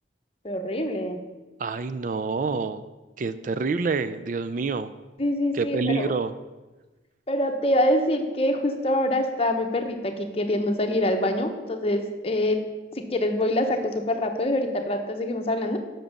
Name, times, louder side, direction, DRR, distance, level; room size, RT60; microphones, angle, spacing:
voice 1, 0.4-1.2 5.2-6.1 7.3-12.6 13.0-15.8, left 1 dB, 35° left, 5 dB, 0.9 m, -25 dB
voice 2, 1.6-2.8 3.2-4.9 5.5-6.3, right 4 dB, 45° right, 12 dB, 0.4 m, -27 dB
7.6 x 6.0 x 6.6 m, 1.2 s
head